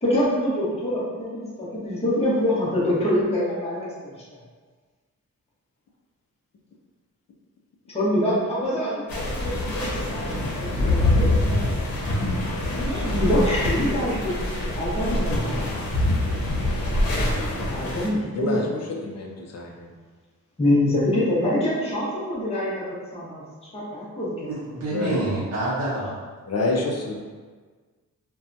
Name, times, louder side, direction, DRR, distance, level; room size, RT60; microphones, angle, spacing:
voice 1, 0.0-4.1 7.9-11.6 12.7-14.3 14.7-15.6 17.7-18.6 20.6-23.4 23.7-24.5, left 1 dB, 20° left, -8 dB, 0.8 m, -25 dB
sound 1, 9.1-18.1, left 1 dB, 85° left, 0.7 m, -25 dB
voice 2, 18.0-19.9 24.9-25.2 26.5-27.2, left 2 dB, 50° left, 0 dB, 0.4 m, -28 dB
voice 3, 24.5-26.2, right 2 dB, 45° right, -9 dB, 0.6 m, -27 dB
2.6 x 2.2 x 2.5 m, 1.5 s
wide cardioid pair, 135°, 34 cm